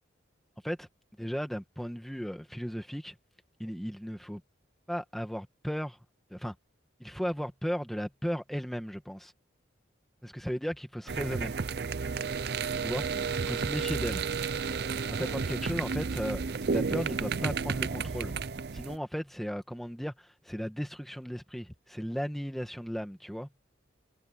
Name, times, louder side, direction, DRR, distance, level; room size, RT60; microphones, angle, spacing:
voice 1, 1.2-3.1 3.6-4.4 4.9-6.0 6.3-6.5 7.0-9.3 10.2-11.5 12.8-13.1 13.4-14.2 15.1-16.4 16.7-18.3 18.7-23.5, equal, ahead, 1.4 m, -35 dB
sound 1, 11.1-19.0, right 5 dB, 55° right, 0.5 m, -32 dB
head